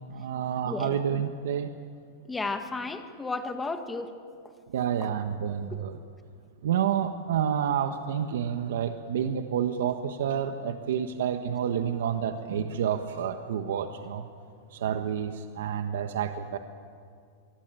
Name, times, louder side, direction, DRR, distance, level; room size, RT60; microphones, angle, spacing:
voice 1, 0.1-1.7 4.7-6.0 6.6-14.3 14.7-16.6, right 8 dB, 80° right, 7 dB, 1.3 m, -29 dB
voice 2, 0.7-1.0 2.3-4.1, left 3 dB, 10° left, 7 dB, 1.6 m, -33 dB
24.5 x 24.0 x 9.1 m, 2.3 s
supercardioid pair, 165°, 0 cm